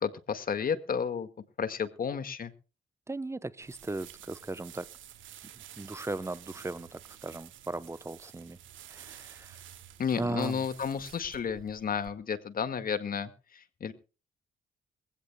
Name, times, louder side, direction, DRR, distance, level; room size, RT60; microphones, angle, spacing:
voice 1, 0.0-1.3 1.6-2.5 10.0-13.9, left 6 dB, 45° left, 1.9 m, -32 dB
voice 2, 3.1-4.9 5.8-8.6 8.9-9.6 10.2-10.6, right 2 dB, 15° right, 0.8 m, -37 dB
sound 1, 3.6-12.1, right 11 dB, 75° right, 2.4 m, -51 dB
22.5 x 16.0 x 2.3 m
cardioid pair, 90°, 20 cm